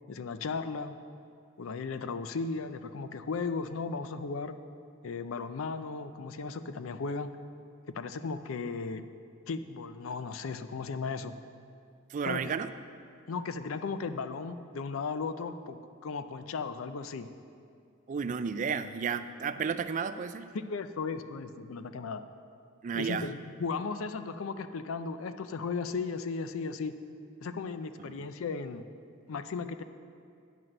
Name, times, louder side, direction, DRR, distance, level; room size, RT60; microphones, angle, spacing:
voice 1, 0.1-1.0 1.6-4.5 5.0-7.3 7.9-9.1 9.5-11.4 12.3-12.5 13.3-17.3 20.5-22.2 22.9-26.9 27.4-28.9 29.3-29.8, left 4 dB, 80° left, 10 dB, 0.5 m, -36 dB
voice 2, 12.1-12.7 18.1-20.5 22.8-23.3 28.0-28.1, right 6 dB, 40° right, 11 dB, 0.3 m, -32 dB
9.3 x 5.9 x 6.3 m, 2.4 s
head